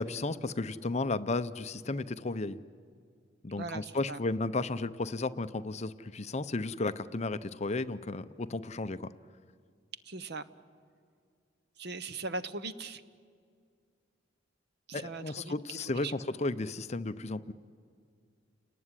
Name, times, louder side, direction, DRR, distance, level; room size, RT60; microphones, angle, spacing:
voice 1, 0.0-2.6 3.4-9.1 14.9-17.5, left 2 dB, 35° left, 13 dB, 0.6 m, -34 dB
voice 2, 3.6-4.2 10.0-10.5 11.8-13.0 14.9-16.2, right 3 dB, 60° right, 14 dB, 0.9 m, -40 dB
29.5 x 19.0 x 9.8 m, 2.2 s
head